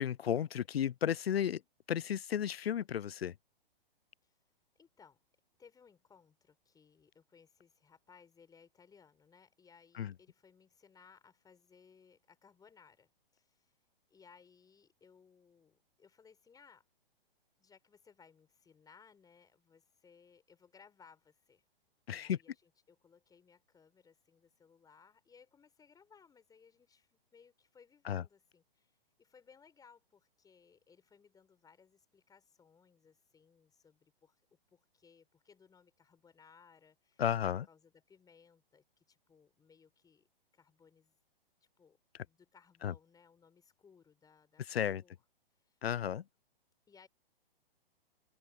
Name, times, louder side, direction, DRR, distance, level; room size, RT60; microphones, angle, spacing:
voice 1, 0.0-1.6 1.9-3.3 10.0-10.1 22.1-22.4 28.1-28.2 37.2-37.7 42.8-42.9 44.7-45.0 45.8-46.2, left 9 dB, 85° left, 0.5 m, -33 dB
voice 2, 4.7-5.2 5.6-13.8 14.1-16.9 17.6-21.6 22.1-37.4 37.7-40.3 40.5-41.2 41.8-42.0 42.2-45.1 45.5-45.8 46.9-47.1, left 6 dB, 10° left, 4.8 m, -63 dB
open air
hypercardioid pair, 125°, 30 cm